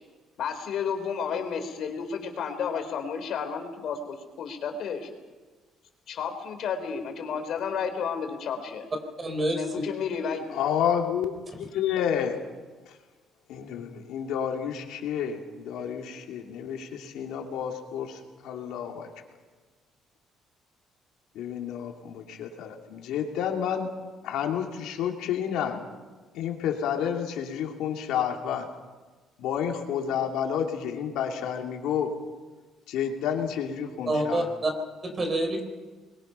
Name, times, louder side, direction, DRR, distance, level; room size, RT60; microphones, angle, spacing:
voice 1, 0.4-5.1 6.1-8.9 9.5-10.5, left 6 dB, 60° left, 6 dB, 3.5 m, -32 dB
voice 2, 9.2-9.8 34.1-34.7 35.0-35.6, right 1 dB, 25° right, 6 dB, 3.9 m, -27 dB
voice 3, 10.5-11.3 11.7-12.4 13.5-19.1 21.3-23.9 24.2-25.8 26.3-28.7 29.4-32.1 32.9-34.5, left 8 dB, 85° left, 2 dB, 2.7 m, -30 dB
25.5 x 22.0 x 5.7 m, 1.3 s
cardioid pair, 140°, 0 cm